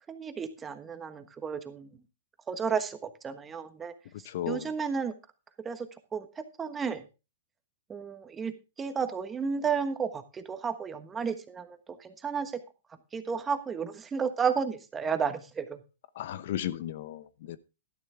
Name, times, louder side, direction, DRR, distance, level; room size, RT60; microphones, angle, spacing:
voice 1, 0.1-1.9 2.5-3.9 4.5-5.1 5.6-7.0 7.9-8.5 8.8-12.5 13.1-15.8, right 6 dB, 15° right, 9 dB, 1.3 m, -32 dB
voice 2, 4.2-4.7 16.2-17.6, left 12 dB, 60° left, 16 dB, 0.9 m, -35 dB
12.0 x 11.0 x 3.5 m, 0.29 s
hypercardioid pair, 135°, 0 cm